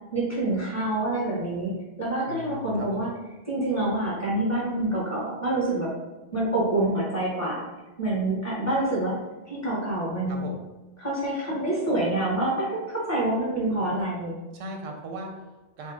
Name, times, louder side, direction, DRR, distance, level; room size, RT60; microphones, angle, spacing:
voice 1, 0.1-3.1 3.5-5.9 6.3-7.6 8.0-9.1 9.5-10.5 11.0-14.4, right 1 dB, 15° left, -8 dB, 1.3 m, -27 dB
voice 2, 2.3-3.1 10.3-10.6 14.5-15.9, right 2 dB, 90° right, 2 dB, 1.0 m, -38 dB
4.2 x 2.1 x 3.5 m, 1.1 s
omnidirectional pair, 1.3 m